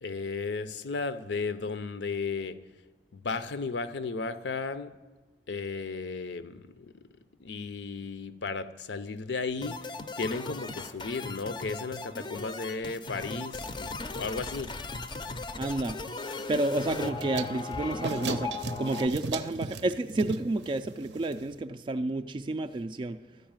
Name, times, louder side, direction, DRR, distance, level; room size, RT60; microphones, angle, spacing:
voice 1, 0.0-2.6 3.1-5.0 5.5-6.9 7.4-9.9 10.2-14.7, left 4 dB, 80° left, 12 dB, 0.6 m, -34 dB
sound 1, 9.6-19.1, left 3 dB, 25° left, 0.5 m, -37 dB
voice 2, 15.5-16.0 16.5-23.2, right 2 dB, 30° right, 6 dB, 0.3 m, -30 dB
sound 2, 16.9-21.6, right 4 dB, 80° right, 0.6 m, -38 dB
12.0 x 5.5 x 8.8 m, 1.2 s
head